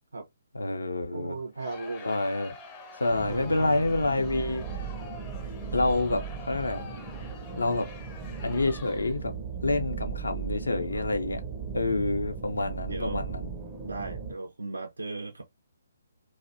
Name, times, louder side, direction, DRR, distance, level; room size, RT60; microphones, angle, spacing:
voice 1, 0.5-1.4 2.0-2.5 3.0-4.6 5.7-6.9 7.5-7.9 8.4-9.3 9.6-11.4 11.7-13.5, left 2 dB, 75° left, 0.6 m, -28 dB
voice 2, 1.1-2.1 3.3-3.9 10.9-11.1 12.9-13.3 13.8-15.4, right 3 dB, 75° right, 0.4 m, -37 dB
Crowd, 1.6-9.3, left 5 dB, 25° left, 0.5 m, -47 dB
sound 1, 3.1-14.4, right 6 dB, 25° right, 0.5 m, -37 dB
2.6 x 2.0 x 2.4 m
figure-of-eight pair, 135°, 0 cm